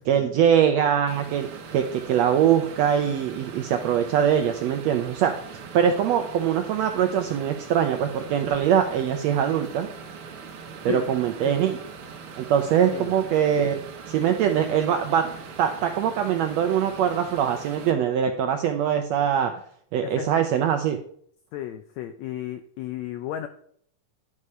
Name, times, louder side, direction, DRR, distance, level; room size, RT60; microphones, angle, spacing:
voice 1, 0.0-5.3 5.7-9.9 10.8-11.8 12.4-13.8 14.1-15.3 15.6-19.5 19.9-21.0, right 9 dB, 85° right, 6 dB, 1.5 m, -22 dB
sound 1, 1.1-17.9, right 5 dB, 60° right, 1.5 m, -41 dB
voice 2, 20.0-20.4 21.5-23.5, left 12 dB, 85° left, 9 dB, 1.5 m, -33 dB
11.0 x 4.8 x 5.5 m, 0.63 s
omnidirectional pair, 3.7 m